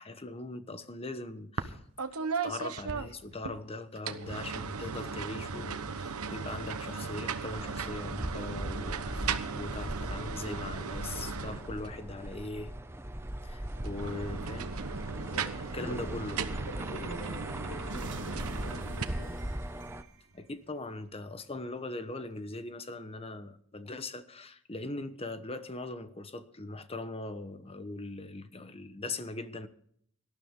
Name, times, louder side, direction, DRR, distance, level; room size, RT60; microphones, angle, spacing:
voice 1, 0.0-1.8 2.4-12.8 13.4-14.7 15.7-16.6 20.3-29.7, left 2 dB, 25° left, 1.1 m, -40 dB
sound 1, 1.6-1.7 2.0-3.6 4.0-12.0 13.8-19.0, right 5 dB, 75° right, 1.1 m, -37 dB
sound 2, 7.5-20.0, right 1 dB, 10° right, 0.7 m, -40 dB
voice 2, 15.1-16.1 16.7-19.4, left 1 dB, 75° left, 6.1 m, -44 dB
sound 3, 17.9-21.3, right 3 dB, 55° right, 1.6 m, -50 dB
18.5 x 12.5 x 3.7 m
head